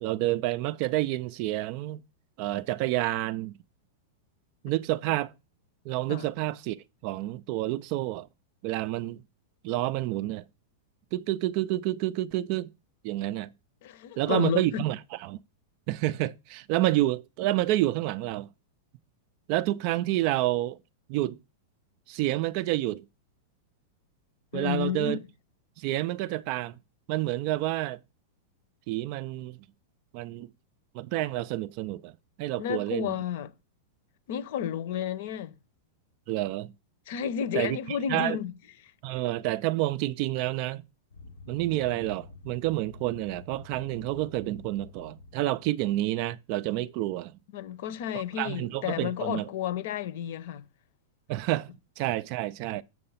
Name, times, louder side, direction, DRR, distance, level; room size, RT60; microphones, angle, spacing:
voice 1, 0.0-2.0 2.4-3.5 4.6-5.3 5.9-8.3 8.6-9.2 9.6-10.4 11.1-12.7 13.0-13.5 14.2-15.4 15.9-18.5 19.5-20.8 21.1-21.4 22.1-23.0 24.5-25.2 25.8-26.7 27.1-28.0 28.9-29.6 30.1-30.5 30.9-32.1 32.4-33.1 36.3-36.7 37.5-38.4 39.0-40.8 41.5-47.3 48.4-49.5 51.3-52.8, right 16 dB, 40° right, 0.4 m, -29 dB
voice 2, 13.8-14.8 24.5-25.2 32.6-33.5 34.3-35.5 37.1-38.5 47.5-50.6, left 9 dB, 50° left, 0.8 m, -31 dB
sound 1, 41.1-45.7, left 3 dB, 90° left, 1.0 m, -48 dB
7.7 x 6.5 x 5.6 m
supercardioid pair, 170°, 0 cm